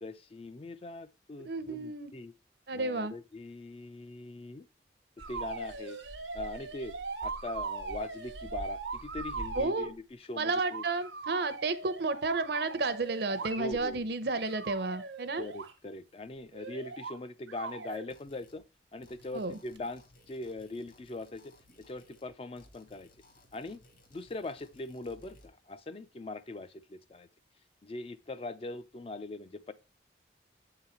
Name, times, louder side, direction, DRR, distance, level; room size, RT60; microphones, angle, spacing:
voice 1, 0.0-2.3 2.7-4.6 5.3-6.0 6.3-6.9 7.2-10.8 13.6-14.1 15.4-18.6 18.9-21.5 21.9-23.1 23.5-23.8 24.1-27.3 27.8-29.7, left 2 dB, 30° left, 0.4 m, -41 dB
voice 2, 1.4-2.1 2.7-3.1 9.6-9.9 10.4-15.4 19.3-19.6, right 3 dB, 60° right, 0.7 m, -32 dB
sound 1, 5.2-9.7 10.5-13.9 14.4-15.7 16.5-17.2 17.5-18.1 19.8-19.9, right 4 dB, 85° right, 1.0 m, -40 dB
sound 2, 18.1-18.6 19.0-22.3 22.6-25.5, left 1 dB, 45° left, 1.3 m, -61 dB
7.7 x 4.0 x 4.3 m
head